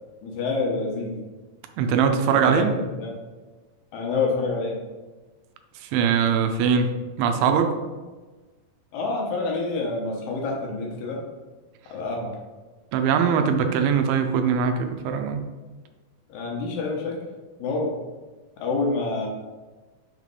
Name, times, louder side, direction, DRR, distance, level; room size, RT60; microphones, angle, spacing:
voice 1, 0.2-1.2 2.3-3.1 3.9-4.8 8.9-11.2 11.9-12.4 16.3-17.1 17.6-17.9 18.6-19.3, left 3 dB, 75° left, -1 dB, 2.7 m, -27 dB
voice 2, 1.8-2.7 5.8-6.9 7.2-7.8 12.9-15.4, right 6 dB, 85° right, 6 dB, 2.5 m, -21 dB
6.3 x 3.2 x 5.2 m, 1.3 s
omnidirectional pair, 4.3 m